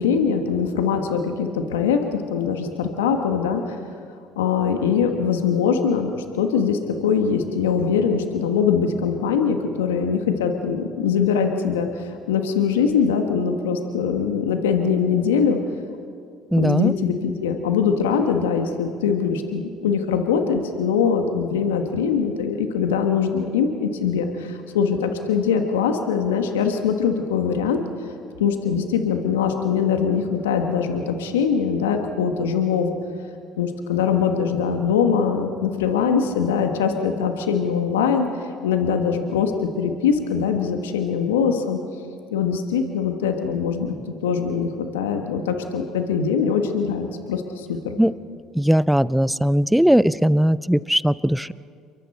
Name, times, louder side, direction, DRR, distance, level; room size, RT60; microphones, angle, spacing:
voice 1, 0.0-3.8 4.4-15.6 16.6-17.1 17.4-27.8 28.4-33.0 33.6-38.3 38.6-41.8 42.3-43.9 44.2-48.0, left 6 dB, 85° left, 5 dB, 1.5 m, -22 dB
voice 2, 16.5-16.9 48.0-48.1 48.5-51.5, equal, ahead, 19 dB, 0.6 m, -18 dB
29.0 x 23.0 x 4.3 m, 2.3 s
hypercardioid pair, 65°, 0 cm